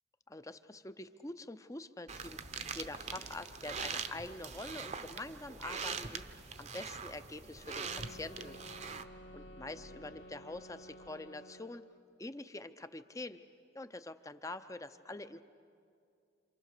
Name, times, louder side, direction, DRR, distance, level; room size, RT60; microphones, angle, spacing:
voice 1, 0.3-2.4 2.7-8.6 9.3-11.8 12.2-13.4 13.7-15.4, left 2 dB, 15° left, 11 dB, 0.6 m, -45 dB
sound 1, 2.1-11.1, left 1 dB, 55° left, 1.0 m, -61 dB
sound 2, 2.1-9.0, right 5 dB, 35° right, 0.8 m, -43 dB
sound 3, 7.8-12.0, equal, 80° left, 1.6 m, -53 dB
28.0 x 27.5 x 6.7 m, 2.4 s
head